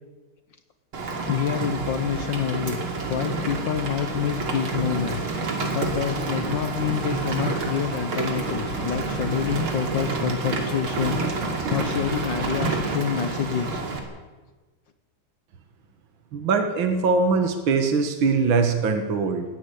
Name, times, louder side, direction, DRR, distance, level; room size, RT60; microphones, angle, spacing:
Rain, 0.9-14.0, right 3 dB, 85° right, 3.6 m, -28 dB
voice 1, 1.3-2.8 3.1-11.2 11.7-13.8, left 9 dB, 65° left, 9 dB, 1.7 m, -27 dB
voice 2, 16.3-19.5, right 4 dB, 70° right, 6 dB, 2.3 m, -22 dB
20.0 x 15.5 x 8.4 m, 1.3 s
omnidirectional pair, 2.3 m